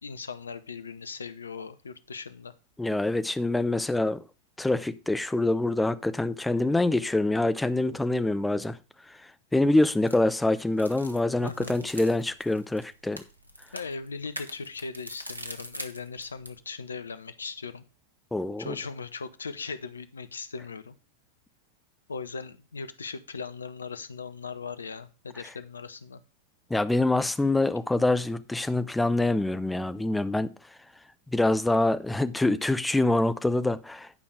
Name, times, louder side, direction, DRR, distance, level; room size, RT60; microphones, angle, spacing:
voice 1, 0.0-2.5 11.4-11.8 13.7-17.8 18.6-20.9 22.1-26.2, left 5 dB, 75° left, 0.7 m, -38 dB
voice 2, 2.8-4.2 4.6-8.8 9.5-13.2 18.3-18.7 26.7-30.5 31.3-34.2, left 2 dB, 5° left, 0.6 m, -25 dB
sound 1, 9.6-16.6, right 1 dB, 85° right, 1.0 m, -44 dB
10.5 x 5.3 x 4.8 m
figure-of-eight pair, 90°, 0 cm